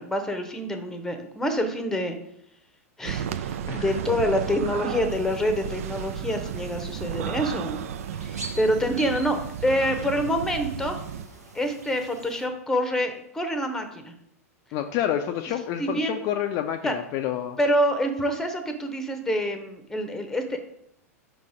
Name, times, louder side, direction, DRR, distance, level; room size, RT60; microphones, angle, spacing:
voice 1, 0.0-2.2 3.0-7.8 8.2-11.0 11.5-14.1 15.8-16.2 16.8-16.9 17.6-20.6, equal, 5° left, 7 dB, 0.8 m, -26 dB
sound 1, 3.0-11.2, right 9 dB, 60° right, 0.3 m, -33 dB
sound 2, 5.1-12.5, right 2 dB, 85° right, 1.1 m, -45 dB
voice 2, 14.7-17.6, left 10 dB, 40° left, 5 dB, 0.4 m, -28 dB
5.4 x 4.0 x 5.0 m, 0.76 s
figure-of-eight pair, 95°, 8 cm